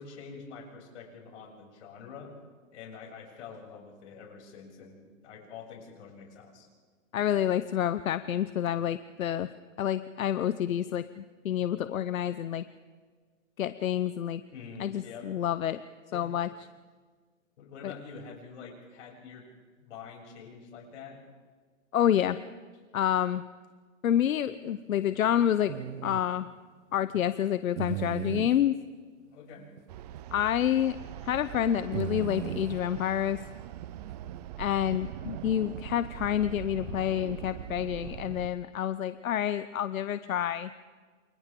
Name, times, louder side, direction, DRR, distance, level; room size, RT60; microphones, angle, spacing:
voice 1, 0.0-2.3 2.7-6.7 11.6-11.7 14.5-15.3 16.1-16.3 17.6-19.5 19.8-21.2 29.3-29.7, left 5 dB, 60° left, -1 dB, 7.7 m, -46 dB
voice 2, 7.1-9.5 9.8-12.6 13.6-14.4 14.8-15.8 16.1-16.5 17.8-17.9 21.9-22.4 22.9-23.4 24.0-25.8 26.0-26.5 26.9-28.8 30.3-31.0 31.2-33.4 34.6-40.7, left 10 dB, 85° left, 13 dB, 0.9 m, -28 dB
sound 1, 25.7-26.2 27.8-28.6 29.8-29.9 30.1-30.2 31.9-32.8 34.1-34.4, right 11 dB, 60° right, 1.2 m, -35 dB
sound 2, 29.9-38.5, right 11 dB, 30° right, 0.6 m, -42 dB
29.5 x 27.0 x 3.8 m, 1.5 s
hypercardioid pair, 155°, 40 cm